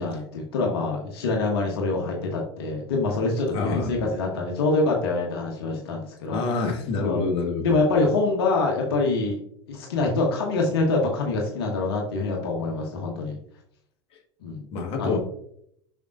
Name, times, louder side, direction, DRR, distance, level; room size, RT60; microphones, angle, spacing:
voice 1, 0.0-6.4 7.0-7.3 7.6-9.4 9.7-13.4 14.4-14.6 15.0-15.2, left 3 dB, 60° left, 0 dB, 1.3 m, -25 dB
voice 2, 3.5-3.9 6.3-7.6 14.7-15.2, left 4 dB, 40° left, 0 dB, 1.6 m, -26 dB
7.0 x 5.6 x 2.6 m, 0.68 s
figure-of-eight pair, 80°, 14 cm